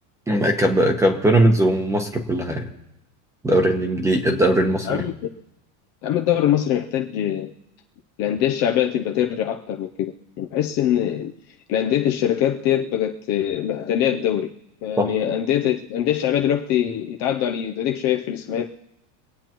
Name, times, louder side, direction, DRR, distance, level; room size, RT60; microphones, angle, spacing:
voice 1, 0.3-2.7 3.4-5.0 15.0-15.1, right 1 dB, 5° right, 4 dB, 1.0 m, -19 dB
voice 2, 6.0-7.5 8.2-11.3 11.7-14.5 14.8-18.6, left 10 dB, 35° left, 2 dB, 0.6 m, -23 dB
25.0 x 8.7 x 3.0 m, 0.90 s
cardioid pair, 170°, 48 cm